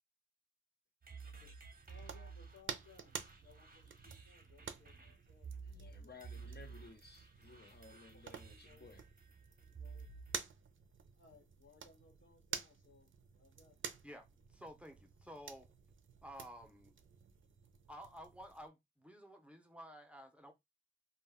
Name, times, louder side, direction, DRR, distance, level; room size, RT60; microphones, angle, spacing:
sound 1, 1.0-10.5, right 5 dB, 50° right, 0.7 m, -53 dB
voice 1, 1.2-6.9 7.9-8.9 9.6-10.1 11.1-14.1, left 5 dB, 80° left, 1.1 m, -66 dB
sound 2, 1.7-18.7, right 6 dB, 85° right, 0.4 m, -51 dB
voice 2, 5.6-9.1, left 4 dB, 55° left, 0.7 m, -58 dB
voice 3, 14.0-15.7 16.2-16.9 17.9-20.5, equal, 5° right, 0.6 m, -53 dB
2.2 x 2.1 x 3.4 m
wide cardioid pair, 70°, 20 cm